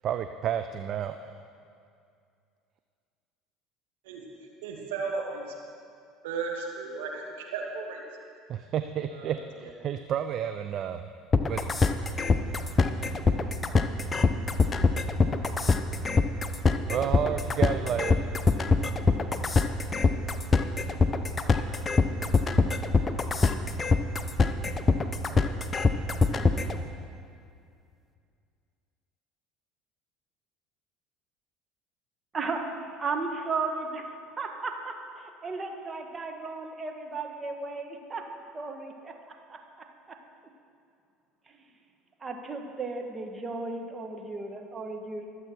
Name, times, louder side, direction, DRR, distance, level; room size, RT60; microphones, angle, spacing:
voice 1, 0.0-1.3 8.5-11.0 11.4-11.6 16.9-18.2, right 9 dB, 50° right, 8 dB, 0.5 m, -31 dB
voice 2, 4.6-5.5 6.2-7.3 7.5-8.0 9.1-9.3 9.6-9.7, right 4 dB, 75° right, 0 dB, 2.2 m, -34 dB
sound 1, 11.3-26.8, left 4 dB, 30° left, 0.8 m, -23 dB
voice 3, 33.0-38.2 38.5-40.2 41.5-41.6 42.2-45.3, right 3 dB, 30° right, 3 dB, 1.8 m, -35 dB
24.0 x 8.2 x 4.5 m, 2.4 s
hypercardioid pair, 70°, 0 cm